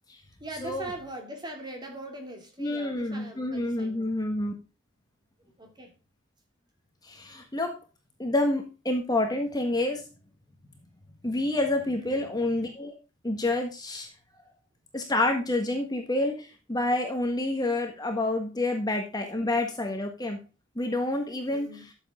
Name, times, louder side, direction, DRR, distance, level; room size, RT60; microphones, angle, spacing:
voice 1, 0.4-4.1 5.6-5.9 12.0-12.3 21.5-21.9, right 1 dB, 20° right, 2.9 m, -41 dB
voice 2, 2.6-4.5 7.0-7.7 8.2-10.0 11.2-12.9 13.2-14.1 14.9-20.4 20.7-21.7, left 2 dB, 20° left, 1.6 m, -28 dB
12.5 x 7.4 x 3.7 m
head